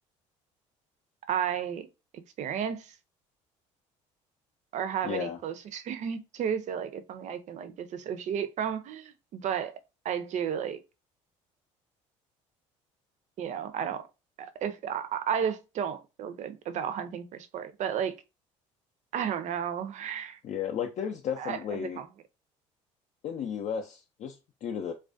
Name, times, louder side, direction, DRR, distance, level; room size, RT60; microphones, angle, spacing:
voice 1, 1.3-1.9 2.4-2.9 4.7-9.8 10.0-10.8 13.4-14.1 14.4-18.1 19.1-20.4 21.4-22.1, right 8 dB, 50° right, 0.5 m, -33 dB
voice 2, 5.0-5.4 20.4-22.0 23.2-24.9, left 8 dB, 50° left, 0.4 m, -34 dB
2.3 x 2.1 x 2.5 m
hypercardioid pair, 65°, 16 cm